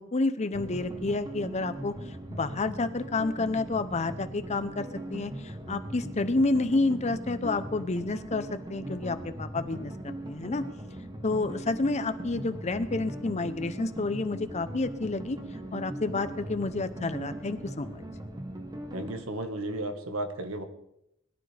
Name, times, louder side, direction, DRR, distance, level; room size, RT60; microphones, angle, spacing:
voice 1, 0.0-10.6 11.2-15.4 15.7-18.0, left 3 dB, 35° left, 11 dB, 0.8 m, -30 dB
sound 1, 0.5-19.3, right 1 dB, 20° right, 1.2 m, -39 dB
voice 2, 18.9-20.6, right 1 dB, 85° right, 6 dB, 1.6 m, -34 dB
21.0 x 12.0 x 3.4 m, 0.80 s
head